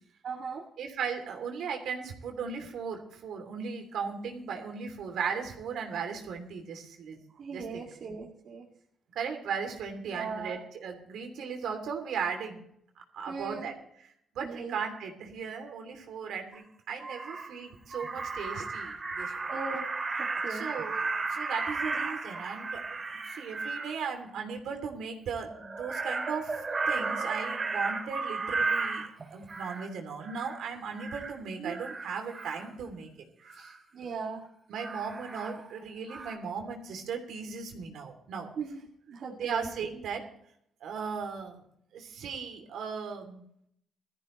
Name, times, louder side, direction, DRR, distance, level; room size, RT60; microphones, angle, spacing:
voice 1, 0.2-0.6 7.4-8.7 10.1-10.6 13.3-13.7 14.4-14.8 19.5-19.9 20.2-20.7 31.6-31.8 33.9-34.5 38.6-38.8 39.1-39.7, right 5 dB, 60° right, -3 dB, 2.3 m, -38 dB
voice 2, 0.8-7.2 7.5-7.8 9.1-12.6 13.1-13.7 14.0-19.4 20.5-23.0 23.3-33.1 33.5-33.7 34.7-38.5 39.4-40.2 40.8-41.6 41.9-43.4, right 6 dB, 75° right, 4 dB, 2.9 m, -37 dB
Crow, 16.5-16.6 17.0-17.5 17.9-24.0 25.5-29.9 30.2-30.6 30.9-31.3 31.7-32.7 33.4-33.8 34.8-35.8 36.1-36.4, right 4 dB, 35° right, 2.1 m, -34 dB
17.5 x 13.5 x 3.1 m, 0.70 s
cardioid pair, 90°, 0 cm